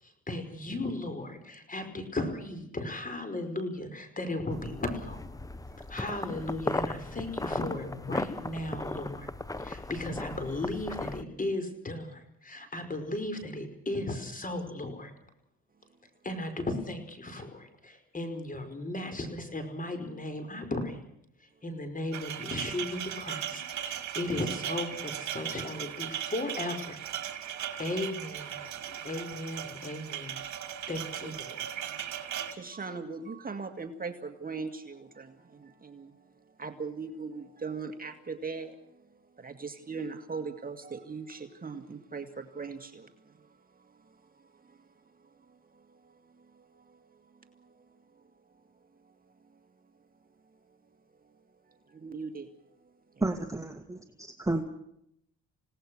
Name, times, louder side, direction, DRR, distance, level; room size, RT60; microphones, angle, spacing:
voice 1, 0.0-5.4 5.9-9.3 9.6-15.1 16.2-21.0 21.6-27.0 27.8-28.6 29.0-30.4 30.9-31.7, left 2 dB, 25° left, 8 dB, 5.2 m, -36 dB
sound 1, 4.5-11.2, left 2 dB, 10° left, 1.0 m, -37 dB
sound 2, 22.1-32.5, right 10 dB, 70° right, 2.8 m, -38 dB
voice 2, 27.4-27.8 28.9-29.0 31.2-31.6 32.2-48.3 49.0-49.1 49.4-49.6 50.2-50.3 51.2-51.4 51.7-52.5 53.1-53.2, right 4 dB, 30° right, 7 dB, 2.1 m, -42 dB
voice 3, 53.2-54.6, right 2 dB, 10° right, 5 dB, 1.9 m, -32 dB
28.0 x 18.0 x 6.4 m, 0.75 s
cardioid pair, 90°, 30 cm